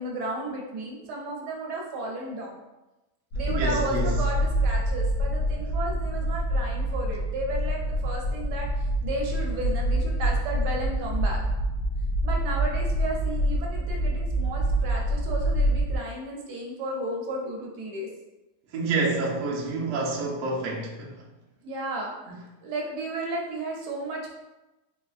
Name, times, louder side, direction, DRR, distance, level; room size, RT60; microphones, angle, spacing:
voice 1, 0.0-2.6 3.4-11.4 12.2-18.1 21.6-22.1 22.6-24.3, right 1 dB, 80° right, -1 dB, 1.2 m, -33 dB
sound 1, 3.3-16.0, right 1 dB, 70° left, 1.0 m, -26 dB
voice 2, 3.5-4.2 18.7-21.3 22.3-22.4, right 3 dB, 65° right, -2 dB, 0.8 m, -28 dB
3.7 x 2.4 x 2.4 m, 1.0 s
omnidirectional pair, 1.8 m